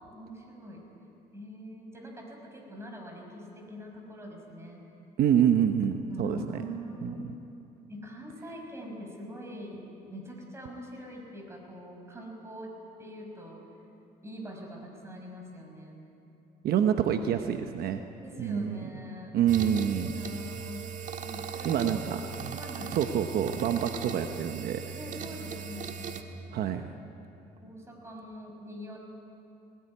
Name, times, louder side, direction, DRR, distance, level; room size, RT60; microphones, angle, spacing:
voice 1, 0.1-0.8 1.3-4.8 6.1-7.3 7.9-13.6 14.2-16.0 18.2-19.3 19.8-20.8 21.2-22.2 22.6-23.0 24.9-26.0 27.6-29.1, equal, 15° right, 1 dB, 6.0 m, -43 dB
voice 2, 5.2-6.6 7.0-7.3 16.6-18.0 18.4-18.9 19.3-20.1 21.6-22.2 22.4-22.6 22.9-25.0 26.5-26.8, right 9 dB, 65° right, 6 dB, 1.1 m, -27 dB
sound 1, 19.5-26.2, right 6 dB, 45° right, 1.9 m, -39 dB
20.0 x 19.0 x 9.5 m, 2.9 s
cardioid pair, 110°, 17 cm